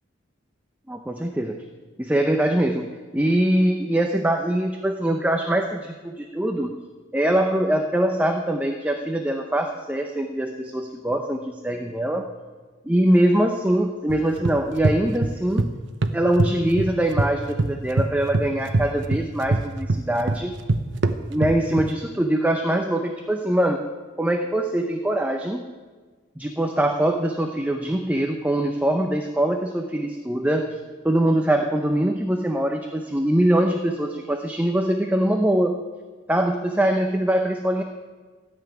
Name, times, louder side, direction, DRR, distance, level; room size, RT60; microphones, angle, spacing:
voice 1, 0.9-1.6 2.0-2.8 3.1-6.7 7.1-12.2 12.9-15.7 16.1-20.5 21.3-23.8 24.2-25.6 26.4-30.8 31.0-35.8 36.3-37.8, right 1 dB, 10° right, 3 dB, 0.7 m, -23 dB
sound 1, 14.1-15.7 16.0-17.3 17.6-21.9, right 2 dB, 70° right, 0.8 m, -23 dB
14.0 x 7.1 x 9.3 m, 1.4 s
head